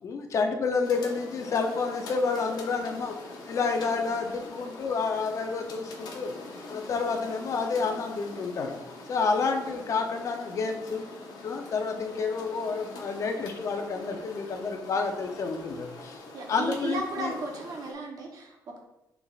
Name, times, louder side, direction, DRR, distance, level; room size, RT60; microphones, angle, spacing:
voice 1, 0.0-3.1 3.5-6.3 6.7-8.7 9.1-11.0 11.4-16.2 16.5-17.3, left 4 dB, 50° left, 4 dB, 0.6 m, -29 dB
sound 1, 0.8-17.9, left 2 dB, 85° left, 0.8 m, -44 dB
voice 2, 16.3-18.8, right 2 dB, 65° right, 1 dB, 0.9 m, -35 dB
5.9 x 3.4 x 2.4 m, 0.89 s
cardioid pair, 120°, 7 cm